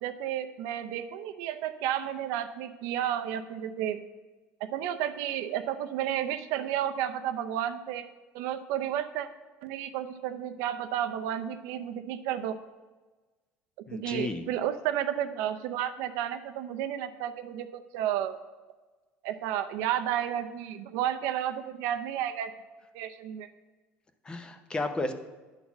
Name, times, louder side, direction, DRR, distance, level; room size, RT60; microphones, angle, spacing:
voice 1, 0.0-4.0 4.6-8.1 8.3-9.3 9.6-12.6 13.9-18.4 19.2-22.5 22.9-23.5, right 10 dB, 80° right, 8 dB, 0.6 m, -32 dB
voice 2, 13.9-14.4 24.2-25.1, left 2 dB, 15° left, 9 dB, 0.7 m, -33 dB
9.8 x 4.0 x 7.1 m, 1.2 s
cardioid pair, 145°, 5 cm